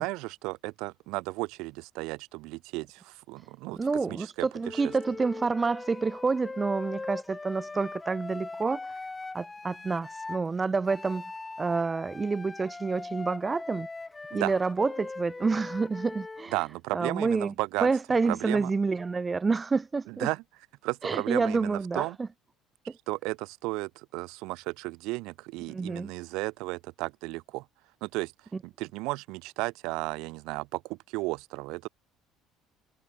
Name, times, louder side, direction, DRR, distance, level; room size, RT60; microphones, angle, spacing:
voice 1, 0.0-3.8 4.1-4.5 4.7-4.8 14.3-14.5 16.5-17.9 18.2-18.7 20.1-20.4 20.8-22.2 23.1-27.6 28.0-28.3 28.6-31.9, right 23 dB, 80° right, 1.3 m, -34 dB
voice 2, 3.7-8.9 9.3-11.2 11.6-13.9 14.3-16.5 16.9-17.5 17.8-20.3 21.0-22.3 25.7-26.1, right 4 dB, 20° right, 0.8 m, -28 dB
Wind instrument woodwind instrument, 4.6-10.4 10.9-16.5, left 3 dB, 15° left, 3.0 m, -40 dB
cardioid pair, 140°, 0 cm